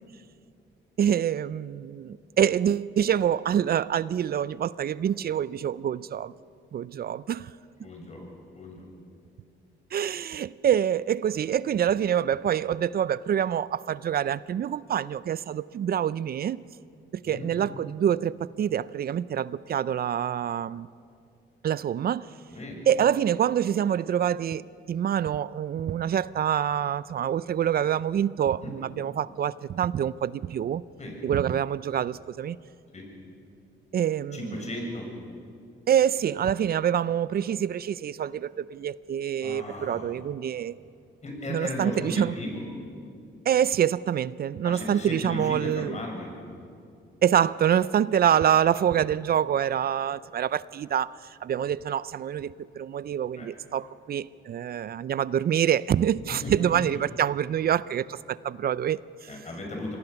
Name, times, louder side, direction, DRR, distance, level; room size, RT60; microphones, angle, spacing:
voice 1, 1.0-6.3 6.7-7.5 9.9-16.6 17.1-20.9 21.6-22.3 22.9-30.8 31.2-32.6 33.9-34.6 35.9-40.8 41.5-42.3 43.5-45.9 47.2-51.1 51.4-59.3, right 9 dB, 50° right, 19 dB, 0.5 m, -26 dB
voice 2, 7.8-8.3 8.5-8.9 17.2-17.5 22.5-22.9 28.6-28.7 30.9-31.2 32.9-33.1 34.3-35.1 39.4-40.1 41.2-42.6 44.6-46.3 53.4-53.5 56.4-56.5 59.3-60.0, left 1 dB, 35° left, 1 dB, 7.1 m, -36 dB
25.5 x 19.5 x 7.1 m, 2.4 s
cardioid pair, 90°, 20 cm